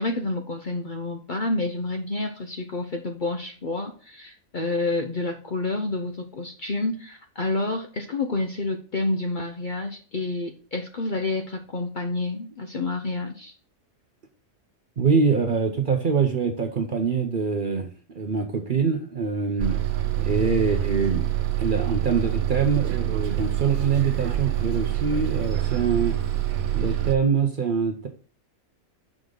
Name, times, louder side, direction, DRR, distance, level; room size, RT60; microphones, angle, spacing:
voice 1, 0.0-13.5, left 2 dB, 45° left, 4 dB, 0.7 m, -29 dB
voice 2, 15.0-19.8 20.2-21.2 21.6-26.2 26.7-28.1, right 5 dB, 45° right, 4 dB, 0.8 m, -24 dB
Bus, 19.6-27.2, right 13 dB, 90° right, 1.2 m, -26 dB
6.4 x 4.9 x 3.8 m, 0.39 s
omnidirectional pair, 1.4 m